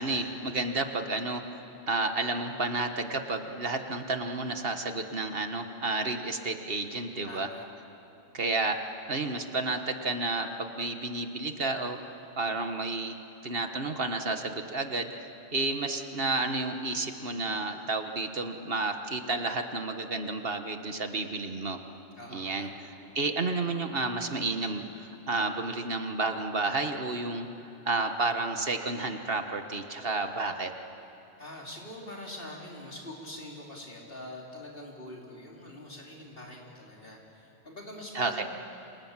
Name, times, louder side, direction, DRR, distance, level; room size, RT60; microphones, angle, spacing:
voice 1, 0.0-1.6 1.9-7.5 8.3-12.0 12.4-13.1 13.4-21.8 22.3-27.5 27.9-30.7 38.1-38.4, right 3 dB, 60° right, 6 dB, 1.6 m, -31 dB
voice 2, 7.3-7.6 22.2-22.9 31.4-38.4, left 1 dB, 55° left, -2 dB, 4.3 m, -44 dB
28.5 x 26.5 x 7.5 m, 2.9 s
omnidirectional pair, 1.1 m